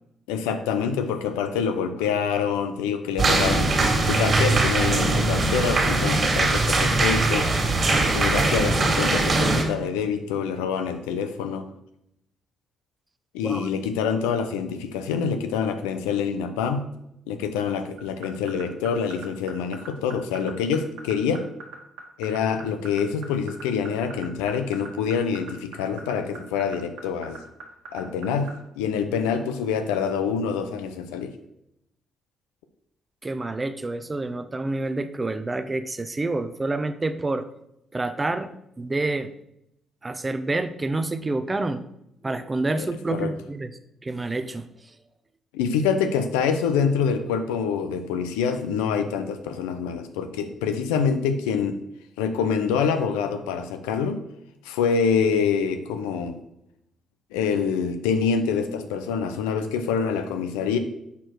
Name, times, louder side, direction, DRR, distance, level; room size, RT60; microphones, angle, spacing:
voice 1, 0.3-7.5 8.1-11.7 13.3-16.9 17.3-21.4 22.2-27.4 27.9-28.5 28.8-31.3 42.7-43.3 45.5-51.8 52.2-54.2 54.6-56.4 57.3-60.8, left 6 dB, 85° left, 8 dB, 0.6 m, -26 dB
sound 1, 3.2-9.6, right 2 dB, 45° right, 2.2 m, -21 dB
sound 2, 18.0-28.5, right 5 dB, 75° right, 1.4 m, -39 dB
voice 2, 33.2-37.5 37.9-38.5 38.8-39.3 40.0-41.8 42.2-43.7 44.0-44.7, right 2 dB, 25° right, 11 dB, 0.7 m, -28 dB
6.9 x 4.5 x 4.5 m, 0.80 s
hypercardioid pair, 50°, 0 cm